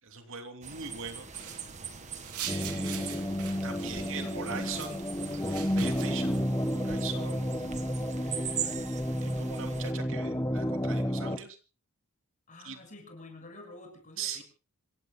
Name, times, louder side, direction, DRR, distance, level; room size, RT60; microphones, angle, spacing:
voice 1, 0.0-1.3 2.4-3.3 3.6-5.0 5.5-6.4 6.7-7.7 8.1-8.8 9.0-11.6 12.6-12.8 14.2-14.4, right 6 dB, 60° right, 6 dB, 3.1 m, -41 dB
sound 1, 0.6-9.9, right 7 dB, 30° right, 1.8 m, -42 dB
sound 2, 1.3-6.4, right 8 dB, 90° right, 2.9 m, -43 dB
sound 3, 2.5-11.4, equal, 15° left, 1.3 m, -31 dB
voice 2, 12.5-14.4, left 2 dB, 35° left, 4 dB, 7.0 m, -49 dB
27.0 x 17.0 x 2.3 m, 0.32 s
head